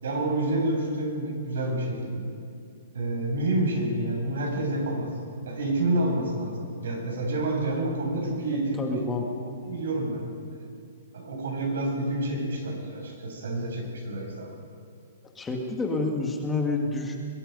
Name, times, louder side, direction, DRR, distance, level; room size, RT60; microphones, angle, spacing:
voice 1, 0.0-2.2 2.9-5.1 5.4-6.6 6.8-9.0 9.4-10.2 10.5-10.7 11.1-14.5, right 2 dB, 80° right, 0 dB, 7.7 m, -28 dB
voice 2, 8.8-9.3 15.4-17.2, left 3 dB, 10° left, 1 dB, 1.9 m, -28 dB
23.0 x 23.0 x 5.5 m, 2.3 s
hypercardioid pair, 165°, 0 cm